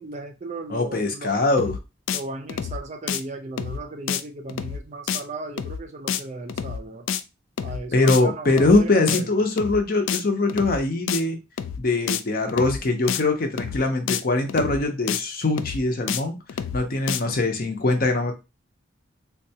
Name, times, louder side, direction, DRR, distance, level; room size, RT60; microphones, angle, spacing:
voice 1, 0.0-1.4 2.1-7.1 7.6-9.3 12.4-12.5, right 2 dB, 35° right, 5 dB, 0.4 m, -36 dB
voice 2, 0.7-1.8 7.9-11.4 11.8-16.4 16.7-18.3, left 2 dB, 45° left, 4 dB, 0.6 m, -22 dB
sound 1, 1.6-1.8 2.1-2.2 2.5-2.8 3.1-3.2 3.6-3.8 4.1-4.2 4.5-4.8 5.1-5.2 5.6-5.8 6.1-6.2 6.5-6.8 7.1-7.2 7.6-7.8 8.1-8.2 8.5-8.8 9.1-9.2 9.6-9.8 10.1-10.2 10.5-10.8 11.1-11.2 11.6-11.8 12.1-12.2 12.5-12.8 13.1-13.2 13.6-13.8 14.1-14.2 14.5-14.8 15.1-15.2 15.6-15.8 16.1-16.2 16.5-16.8 17.1-17.2, left 8 dB, 85° left, 0.3 m, -28 dB
3.7 x 2.2 x 2.7 m, 0.26 s
head